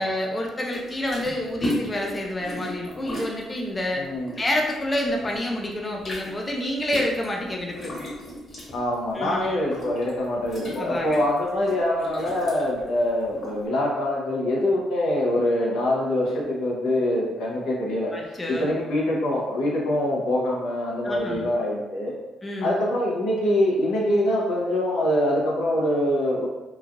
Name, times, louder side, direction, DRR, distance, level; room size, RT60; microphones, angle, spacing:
voice 1, 0.0-4.0 4.4-7.9 9.1-9.6 10.7-11.2 18.1-18.7 21.0-21.5 22.4-22.8, left 1 dB, 25° left, 0 dB, 0.4 m, -28 dB
sound 1, 0.7-5.3 5.6-13.6, left 1 dB, 40° left, 1.0 m, -36 dB
voice 2, 3.9-4.4 5.1-5.3 8.7-22.1 22.6-26.5, left 1 dB, 85° left, -3 dB, 0.7 m, -24 dB
3.0 x 2.3 x 2.5 m, 1.1 s
cardioid pair, 90°, 0 cm